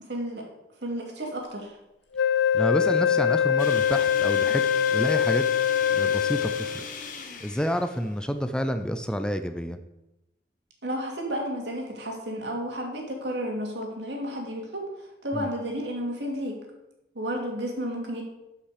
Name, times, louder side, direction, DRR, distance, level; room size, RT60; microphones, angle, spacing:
voice 1, 0.1-0.4 0.8-1.8 10.8-16.6 17.1-18.2, equal, 80° right, 0 dB, 2.5 m, -32 dB
Wind instrument woodwind instrument, 2.1-6.9, left 8 dB, 80° left, 0.4 m, -23 dB
voice 2, 2.5-5.5 5.9-6.8 7.4-9.8 15.3-15.5, equal, 5° left, 8 dB, 0.4 m, -29 dB
sound 1, 3.6-8.8, left 5 dB, 50° left, 1.1 m, -39 dB
12.0 x 5.6 x 5.0 m, 0.93 s
head